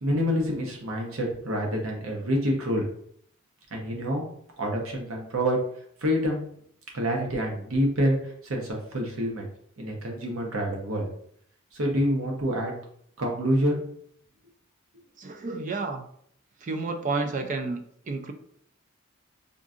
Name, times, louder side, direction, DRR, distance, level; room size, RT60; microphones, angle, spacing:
voice 1, 0.0-2.9 3.7-4.2 4.6-5.6 6.0-6.5 6.9-9.5 9.8-11.1 11.7-12.7 13.2-13.8, equal, 80° right, 0 dB, 0.8 m, -27 dB
voice 2, 15.2-16.1 16.6-18.3, right 3 dB, 35° right, 6 dB, 0.3 m, -31 dB
3.7 x 2.6 x 2.4 m, 0.65 s
head